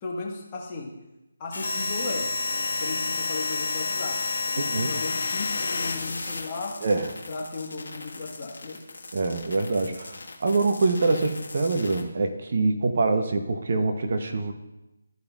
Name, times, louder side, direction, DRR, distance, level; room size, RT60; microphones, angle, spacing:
voice 1, 0.0-0.9 1.4-6.8 7.3-8.8, left 3 dB, 25° left, -2 dB, 1.4 m, -36 dB
sound 1, 1.5-12.0, left 3 dB, 70° left, 1.3 m, -31 dB
voice 2, 4.6-4.9 6.8-7.1 9.1-14.5, right 3 dB, 50° right, 6 dB, 0.8 m, -25 dB
13.0 x 5.2 x 2.4 m, 0.96 s
figure-of-eight pair, 155°, 0 cm